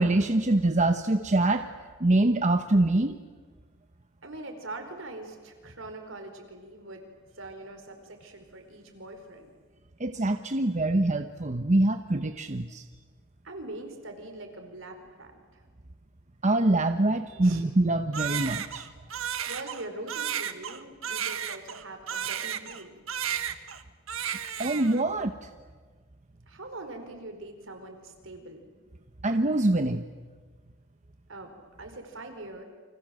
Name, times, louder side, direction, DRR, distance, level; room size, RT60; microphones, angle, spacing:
voice 1, 0.0-1.7 2.0-3.2 10.0-12.8 16.4-18.9 24.6-25.5 29.2-30.0, right 2 dB, 35° right, 8 dB, 1.0 m, -24 dB
voice 2, 4.2-7.0 7.3-9.5 13.4-15.6 17.4-17.6 19.5-23.0 26.5-28.7 31.3-31.5 31.8-32.6, right 2 dB, 70° right, 5 dB, 4.7 m, -42 dB
Crying sobbing, 18.1-22.8 23.1-23.8 24.1-25.0, right 9 dB, 90° right, 1.5 m, -33 dB
29.5 x 26.0 x 7.8 m, 1.4 s
head